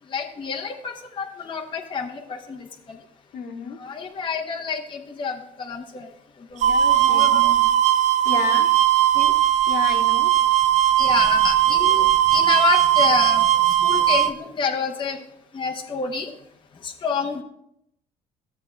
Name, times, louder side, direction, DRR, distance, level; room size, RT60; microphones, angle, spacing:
voice 1, 0.1-3.0 3.8-6.1 6.5-6.7 7.0-7.5 8.3-8.5 9.1-9.3 11.0-15.2 15.5-16.3 16.8-17.4, left 5 dB, 30° left, 1 dB, 0.8 m, -28 dB
voice 2, 3.3-3.8 6.6-7.6 8.2-8.7 9.7-10.3, left 6 dB, 65° left, 2 dB, 1.2 m, -31 dB
sound 1, 6.6-14.3, right 12 dB, 45° right, 0.4 m, -18 dB
13.5 x 7.5 x 2.2 m, 0.76 s
cardioid pair, 110°, 17 cm